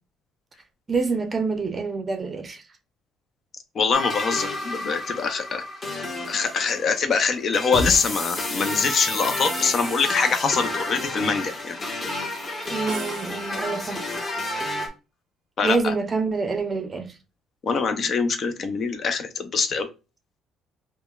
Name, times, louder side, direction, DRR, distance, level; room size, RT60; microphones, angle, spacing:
voice 1, 0.9-2.6 12.7-14.0 15.6-17.1, right 4 dB, 25° right, 0.6 m, -26 dB
voice 2, 3.7-5.6 6.3-11.8 15.6-15.9 17.6-19.9, left 5 dB, 45° left, 0.6 m, -24 dB
sound 1, 3.9-14.9, left 1 dB, 20° left, 1.0 m, -30 dB
sound 2, 12.9-14.0, right 8 dB, 75° right, 0.6 m, -41 dB
5.1 x 2.1 x 2.3 m
cardioid pair, 135°, 0 cm